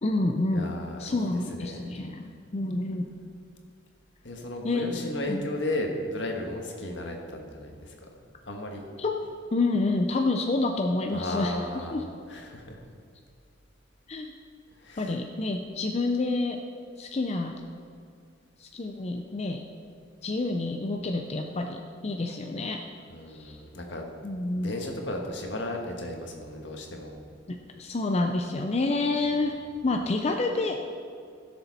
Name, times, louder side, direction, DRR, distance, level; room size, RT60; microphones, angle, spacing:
voice 1, 0.0-0.7 1.0-2.2 2.5-3.1 4.6-4.9 5.3-5.4 9.0-9.1 9.5-11.6 11.9-12.0 14.1-14.3 15.0-16.6 17.0-17.5 18.6-19.6 20.2-22.8 23.3-23.6 24.2-24.7 27.5-30.8, left 2 dB, 35° left, 3 dB, 0.5 m, -28 dB
voice 2, 0.5-1.9 4.2-9.2 11.1-12.8 14.8-15.2 23.1-24.0 24.5-27.1 29.8-29.9, left 1 dB, 70° left, 2 dB, 1.6 m, -35 dB
16.5 x 7.0 x 4.1 m, 2.3 s
head